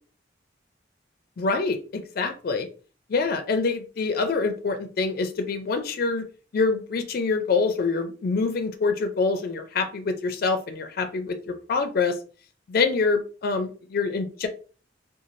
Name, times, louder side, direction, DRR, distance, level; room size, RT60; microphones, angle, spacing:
voice 1, 1.4-2.7 3.1-6.2 6.5-12.2 12.7-14.5, left 4 dB, 55° left, 8 dB, 0.4 m, -25 dB
3.0 x 2.2 x 2.5 m, 0.38 s
head